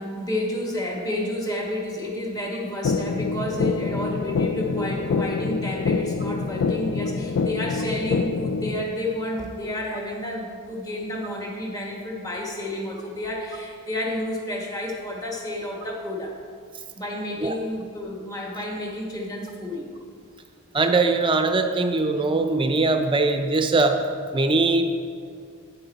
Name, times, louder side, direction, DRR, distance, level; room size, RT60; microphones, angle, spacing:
voice 1, 0.0-16.4 17.0-19.9, left 1 dB, 15° left, -1 dB, 1.1 m, -30 dB
sound 1, 2.8-8.8, left 4 dB, 60° left, 0.3 m, -26 dB
voice 2, 20.7-24.0 24.3-25.0, right 3 dB, 25° right, 6 dB, 0.5 m, -21 dB
9.0 x 7.5 x 4.1 m, 2.3 s
head